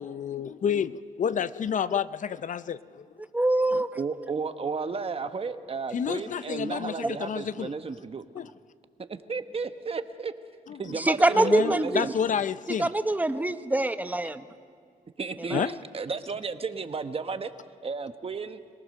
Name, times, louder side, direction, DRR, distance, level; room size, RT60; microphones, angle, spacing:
voice 1, 0.0-3.1 3.7-3.8 5.9-7.7 8.3-8.5 10.7-10.9 11.3-12.9 15.5-15.8, left 7 dB, 55° left, 15 dB, 0.5 m, -30 dB
voice 2, 3.3-3.9 10.9-12.0 12.8-14.5 15.5-15.7, right 2 dB, 10° right, 10 dB, 1.0 m, -24 dB
voice 3, 4.0-8.2 9.3-10.3 10.8-12.1 15.2-15.6 15.9-17.5 17.8-18.6, right 4 dB, 40° right, 9 dB, 1.1 m, -33 dB
26.0 x 18.5 x 6.6 m, 2.1 s
cardioid pair, 85°, 15 cm